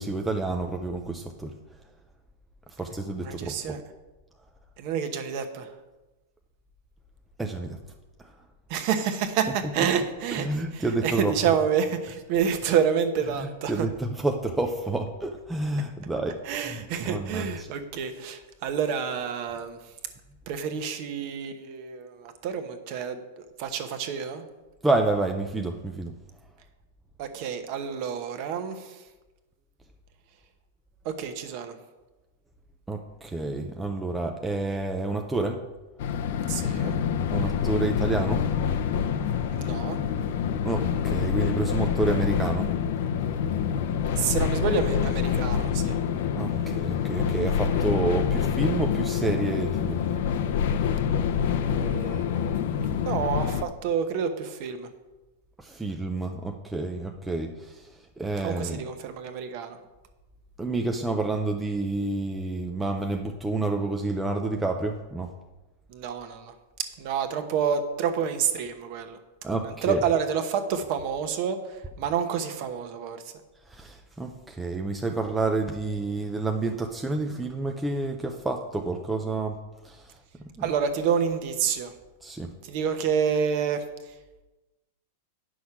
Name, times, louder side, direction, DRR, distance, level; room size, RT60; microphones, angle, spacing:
voice 1, 0.0-1.5 2.8-3.8 7.4-7.8 10.4-11.3 13.3-16.4 17.1-17.7 24.8-26.1 32.9-35.6 37.3-38.4 40.6-42.7 46.4-50.0 55.6-57.7 58.2-58.8 60.6-65.3 69.4-70.0 73.7-79.6 79.8-80.0 80.6-80.7 82.2-82.5, right 2 dB, 5° right, 3 dB, 0.5 m, -29 dB
voice 2, 3.2-3.8 4.8-5.7 8.7-13.9 16.4-19.8 20.5-23.2 23.6-24.4 27.2-28.9 31.0-31.8 36.5-37.0 39.5-40.0 44.2-46.0 51.7-54.9 58.4-59.8 65.9-66.5 67.0-69.2 69.6-73.2 80.6-81.9 82.6-83.8, right 7 dB, 40° right, 8 dB, 1.0 m, -28 dB
sound 1, 36.0-53.6, left 8 dB, 55° left, 0.6 m, -26 dB
9.8 x 6.2 x 5.9 m, 1.1 s
supercardioid pair, 165°, 0 cm